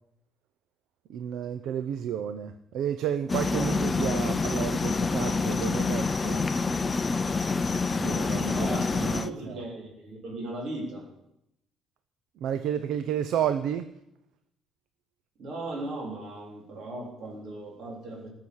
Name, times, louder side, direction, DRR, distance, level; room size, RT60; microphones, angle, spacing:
voice 1, 1.1-6.4 7.9-9.6 12.4-13.9, right 9 dB, 65° right, 10 dB, 0.7 m, -31 dB
sound 1, 3.3-9.3, left 4 dB, 20° left, 0.5 m, -27 dB
voice 2, 8.5-11.1 15.4-18.3, right 2 dB, 50° right, -1 dB, 3.7 m, -37 dB
20.0 x 6.9 x 6.3 m, 0.82 s
cardioid pair, 160°, 0 cm